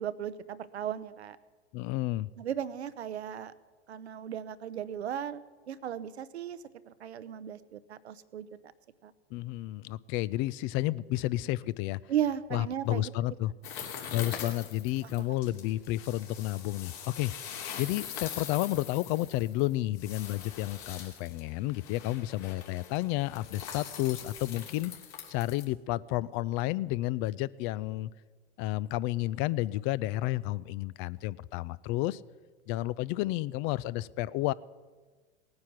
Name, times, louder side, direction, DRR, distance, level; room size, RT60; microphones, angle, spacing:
voice 1, 0.0-1.4 2.4-3.5 3.9-5.4 5.7-6.6 6.9-8.5 9.0-9.1 12.1-13.1, right 9 dB, 85° right, 14 dB, 0.8 m, -35 dB
voice 2, 1.7-2.3 9.3-12.0 12.5-13.5 14.1-24.9 25.3-28.1 28.6-32.2 32.7-34.5, left 16 dB, 40° left, 21 dB, 0.4 m, -31 dB
sound 1, 13.6-25.6, left 8 dB, 55° left, 3.1 m, -43 dB
18.0 x 9.6 x 6.0 m, 1.4 s
hypercardioid pair, 95°, 32 cm